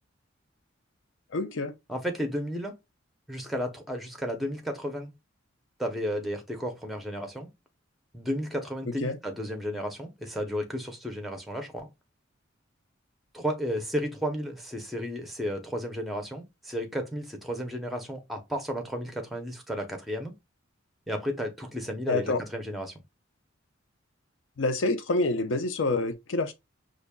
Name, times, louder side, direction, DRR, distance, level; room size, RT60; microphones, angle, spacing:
voice 1, 1.3-1.7 9.0-9.2 22.1-22.4 24.6-26.5, left 2 dB, 65° left, 0.5 m, -27 dB
voice 2, 1.9-2.7 3.3-5.1 5.8-7.5 8.1-11.9 13.3-20.3 21.1-22.9, equal, ahead, 0.7 m, -33 dB
5.1 x 2.5 x 2.2 m
head